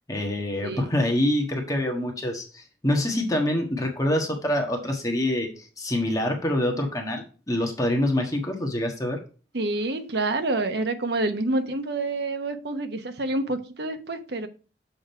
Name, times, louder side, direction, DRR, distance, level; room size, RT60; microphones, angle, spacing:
voice 1, 0.1-9.2, left 1 dB, 20° left, 1.4 m, -26 dB
voice 2, 9.5-14.5, right 2 dB, 65° right, 1.0 m, -27 dB
7.0 x 5.0 x 4.5 m
head